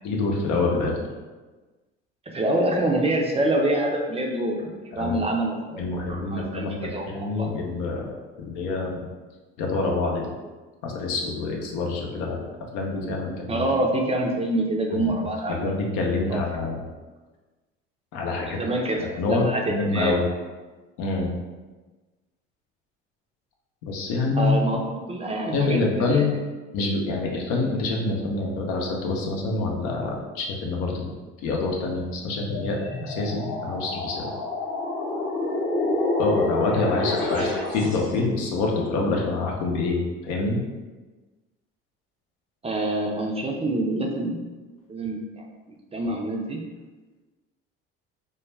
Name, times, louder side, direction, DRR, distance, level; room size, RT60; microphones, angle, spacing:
voice 1, 0.0-1.0 4.9-5.1 5.8-9.0 9.6-10.3 10.8-12.5 12.7-13.6 14.9-15.1 15.6-16.8 18.1-18.6 19.2-20.2 21.0-21.3 23.8-24.5 25.5-26.3 26.7-31.1 31.4-32.8 33.0-34.3 36.2-40.6, left 3 dB, 75° left, -1 dB, 0.6 m, -26 dB
voice 2, 2.3-5.8 6.1-7.5 13.5-15.7 16.3-16.4 18.4-20.1 24.4-26.3 37.3-37.5 42.6-44.4 44.9-45.4 45.9-46.6, right 1 dB, 20° right, 0 dB, 0.4 m, -26 dB
sound 1, 32.4-38.2, left 2 dB, 40° left, 0.8 m, -28 dB
2.3 x 2.1 x 3.1 m, 1.3 s
supercardioid pair, 75°, 30 cm